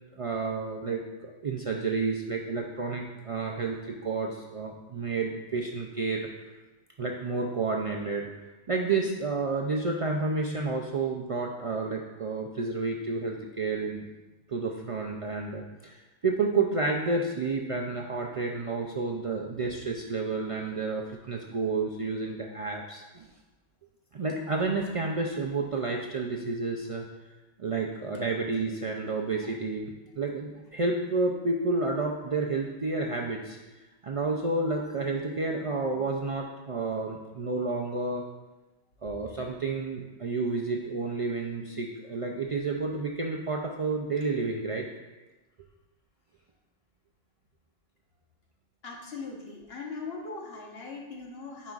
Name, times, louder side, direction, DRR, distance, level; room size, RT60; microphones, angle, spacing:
voice 1, 0.1-6.3 7.0-8.3 8.7-14.1 14.5-23.3 24.1-27.1 27.6-33.6 34.0-38.2 39.0-44.9, right 3 dB, 50° right, 0 dB, 0.4 m, -30 dB
voice 2, 48.8-51.7, left 4 dB, 70° left, -1 dB, 1.3 m, -40 dB
9.6 x 5.0 x 2.4 m, 1.1 s
omnidirectional pair, 1.1 m